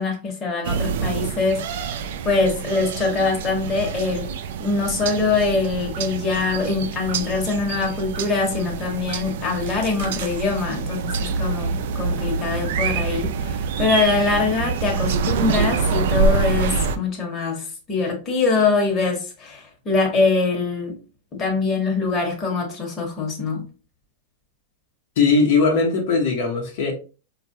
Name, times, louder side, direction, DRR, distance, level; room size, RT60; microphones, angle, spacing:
voice 1, 0.0-1.9 2.2-4.3 4.6-21.0 21.4-23.7, left 4 dB, 25° left, 1.2 m, -23 dB
sound 1, 0.6-17.0, right 5 dB, 70° right, 0.4 m, -26 dB
voice 2, 25.2-26.9, left 4 dB, 65° left, 1.0 m, -19 dB
4.5 x 2.5 x 2.7 m
hypercardioid pair, 130°, 0 cm